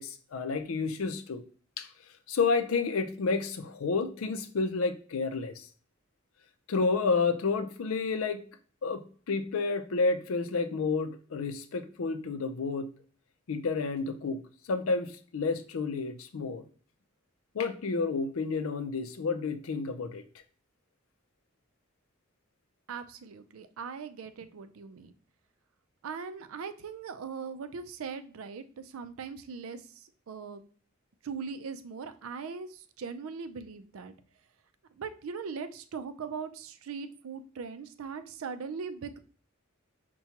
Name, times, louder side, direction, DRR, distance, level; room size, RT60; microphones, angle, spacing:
voice 1, 0.0-1.4 1.8-1.9 2.3-5.7 6.7-8.4 8.8-12.9 13.5-14.4 14.7-16.6 17.5-20.2, left 4 dB, 90° left, 9 dB, 0.5 m, -30 dB
voice 2, 22.9-25.1 26.0-30.6 31.2-34.2 34.9-39.2, right 5 dB, 90° right, 10 dB, 0.4 m, -40 dB
5.7 x 2.2 x 2.8 m, 0.42 s
head